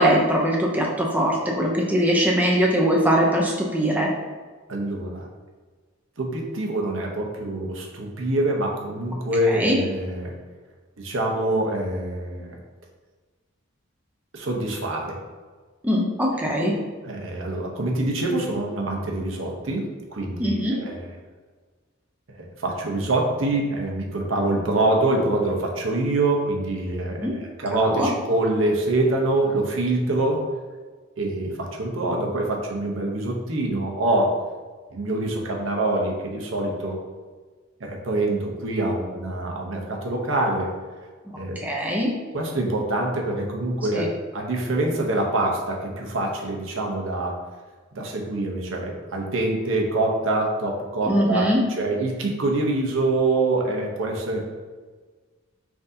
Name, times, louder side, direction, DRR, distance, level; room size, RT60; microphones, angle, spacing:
voice 1, 0.0-4.1 9.5-9.8 15.8-16.7 20.4-20.8 27.2-27.3 27.8-28.1 41.6-42.1 43.9-44.0 51.1-51.6, equal, 10° right, -2 dB, 0.5 m, -21 dB
voice 2, 4.7-5.3 6.2-10.3 11.0-12.6 14.3-15.2 16.4-16.8 17.0-21.2 22.3-30.4 31.2-34.3 34.9-37.0 37.8-40.7 41.4-41.6 42.3-47.4 47.9-54.4, right 2 dB, 80° right, 0 dB, 0.8 m, -25 dB
5.8 x 2.7 x 2.7 m, 1.4 s
head